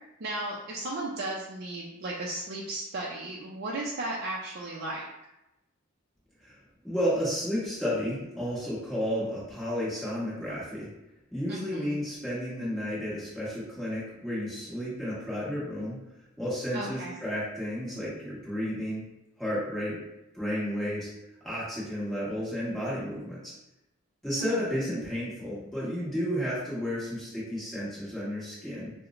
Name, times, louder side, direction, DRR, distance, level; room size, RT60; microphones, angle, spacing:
voice 1, 0.2-5.0 11.5-12.0 16.7-17.1 24.4-24.6, right 2 dB, 50° right, -4 dB, 0.4 m, -35 dB
voice 2, 6.8-10.9 11.3-16.0 16.4-19.1 19.4-20.0 20.3-21.1 21.4-23.5 24.2-28.9, equal, ahead, -10 dB, 1.3 m, -32 dB
4.5 x 2.1 x 2.4 m, 0.91 s
head